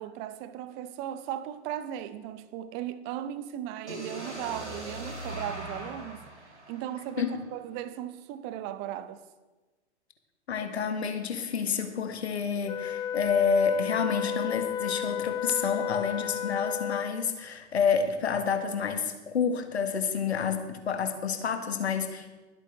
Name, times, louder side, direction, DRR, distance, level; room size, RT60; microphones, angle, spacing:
voice 1, 0.0-9.2, right 11 dB, 30° right, 0.8 m, -37 dB
sound 1, 3.9-7.8, equal, 90° right, 2.8 m, -41 dB
voice 2, 10.5-22.3, left 6 dB, 70° left, 1.6 m, -29 dB
Wind instrument woodwind instrument, 12.7-17.3, left 9 dB, 10° left, 0.5 m, -33 dB
22.0 x 8.2 x 3.4 m
figure-of-eight pair, 105°, 34 cm